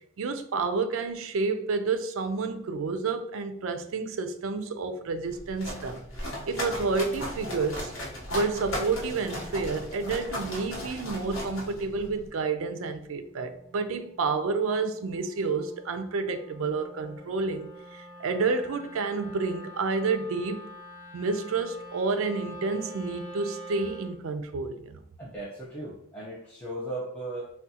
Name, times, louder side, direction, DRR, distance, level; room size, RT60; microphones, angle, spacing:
voice 1, 0.2-7.9 8.3-20.6 21.1-25.0, right 4 dB, 75° right, 0.4 m, -30 dB
sound 1, 5.3-12.3, left 1 dB, 85° left, 0.9 m, -36 dB
Wind instrument woodwind instrument, 12.6-24.2, equal, 65° left, 0.6 m, -47 dB
voice 2, 25.2-27.5, right 1 dB, 5° left, 0.5 m, -37 dB
3.5 x 2.2 x 2.7 m
head